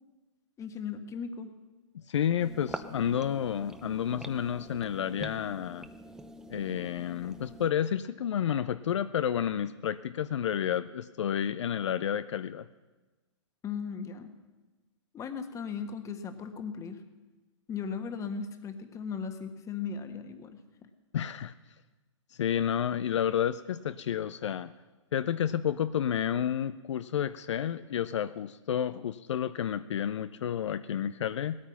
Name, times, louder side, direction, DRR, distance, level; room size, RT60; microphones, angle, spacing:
voice 1, 0.6-1.5 13.6-14.3 15.1-17.0 17.7-20.5 20.8-20.9, left 6 dB, 20° left, 8 dB, 1.4 m, -37 dB
voice 2, 2.1-5.9 6.5-12.7 21.1-21.5 22.3-24.7 25.1-31.6, left 9 dB, 65° left, 13 dB, 0.5 m, -30 dB
sound 1, 2.4-7.7, right 1 dB, 5° right, 0.7 m, -45 dB
18.0 x 13.0 x 5.8 m, 1.2 s
hypercardioid pair, 120°, 16 cm